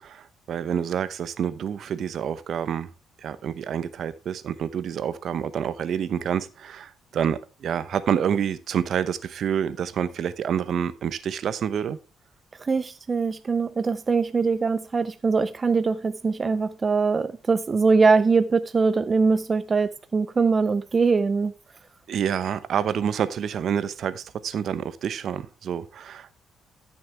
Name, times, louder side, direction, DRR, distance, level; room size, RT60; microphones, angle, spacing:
voice 1, 0.0-2.9 3.2-12.0 22.1-26.4, right 8 dB, 65° right, 0.8 m, -28 dB
voice 2, 12.6-21.5, right 4 dB, 35° right, 0.5 m, -22 dB
13.5 x 6.7 x 3.3 m
cardioid pair, 90°, 0 cm